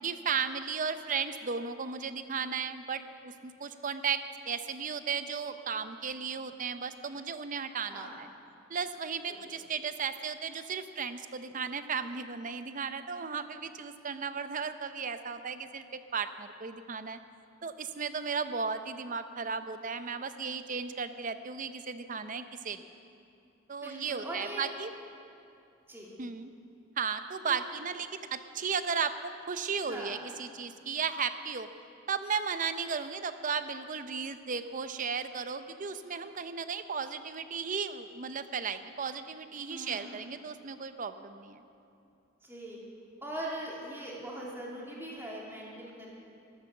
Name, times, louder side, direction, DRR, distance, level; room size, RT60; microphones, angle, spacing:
voice 1, 0.0-8.3 8.7-17.2 17.6-22.8 23.7-24.9 26.2-26.5 27.0-31.7 32.1-41.6, right 6 dB, 40° right, 11 dB, 0.6 m, -35 dB
voice 2, 7.9-8.2 9.3-9.4 23.8-24.7 25.9-26.1 27.5-27.6 29.8-30.1 39.6-40.1 42.4-42.8 43.2-46.2, right 1 dB, 10° right, -4 dB, 2.6 m, -41 dB
13.0 x 12.0 x 7.0 m, 2.7 s
head